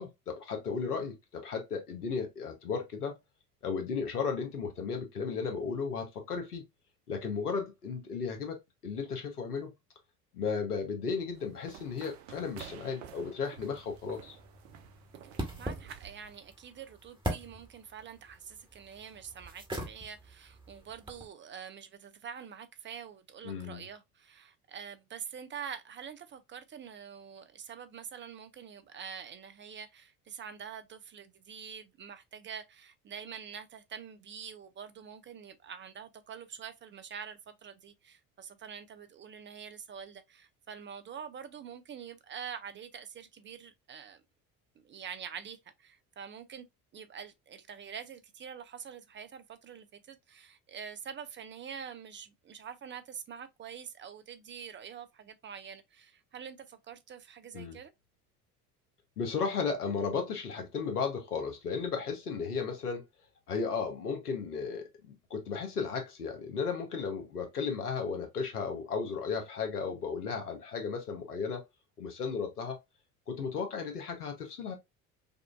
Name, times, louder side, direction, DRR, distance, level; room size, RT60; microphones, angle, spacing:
voice 1, 0.0-3.2 3.6-6.6 7.1-8.6 8.8-9.7 10.3-14.4 23.4-23.8 57.5-57.8 59.2-63.0 63.5-71.6 72.0-72.8 73.3-74.7, left 5 dB, 85° left, 1.0 m, -35 dB
sound 1, 11.3-16.4, right 10 dB, 65° right, 0.7 m, -51 dB
sound 2, 13.6-21.3, right 1 dB, 10° right, 1.2 m, -42 dB
voice 2, 15.6-44.2 44.8-46.7 46.9-57.9, right 7 dB, 25° right, 0.5 m, -46 dB
5.2 x 2.5 x 2.4 m
figure-of-eight pair, 65°, 44 cm